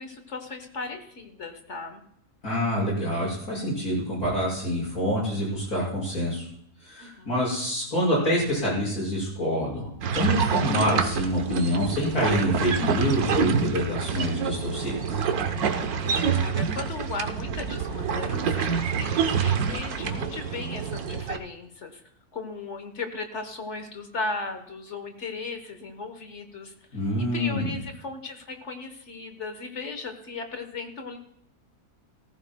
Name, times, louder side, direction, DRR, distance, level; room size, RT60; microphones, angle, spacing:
voice 1, 0.0-2.0 7.0-7.4 16.0-22.0 22.3-26.7 27.2-31.2, left 3 dB, 50° left, 7 dB, 1.4 m, -36 dB
voice 2, 2.4-6.5 6.8-9.9 10.1-15.2 26.9-27.7, equal, 70° left, -5 dB, 6.5 m, -26 dB
sound 1, 10.0-21.4, right 6 dB, 75° right, 1.3 m, -27 dB
18.5 x 14.5 x 2.2 m, 0.70 s
omnidirectional pair, 1.6 m